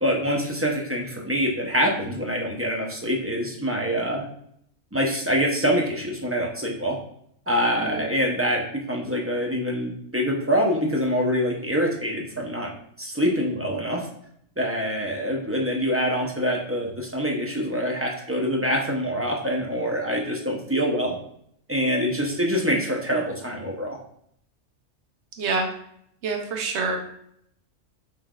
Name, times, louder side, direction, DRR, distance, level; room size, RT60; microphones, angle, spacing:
voice 1, 0.0-4.3 4.9-7.0 7.5-12.7 13.0-14.1 14.6-21.2 21.7-24.0, equal, 15° right, -1 dB, 0.5 m, -25 dB
voice 2, 25.4-25.7 26.2-27.0, right 4 dB, 65° right, 2 dB, 1.1 m, -26 dB
5.9 x 3.2 x 2.3 m, 0.69 s
omnidirectional pair, 1.3 m